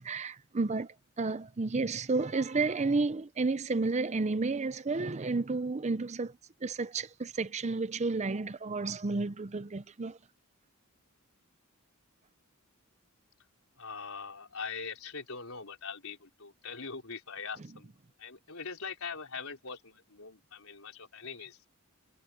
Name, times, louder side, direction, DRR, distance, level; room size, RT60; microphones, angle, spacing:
voice 1, 0.0-10.2, right 3 dB, 30° right, 0.6 m, -31 dB
voice 2, 13.8-17.9 18.2-21.6, left 5 dB, 75° left, 4.4 m, -42 dB
head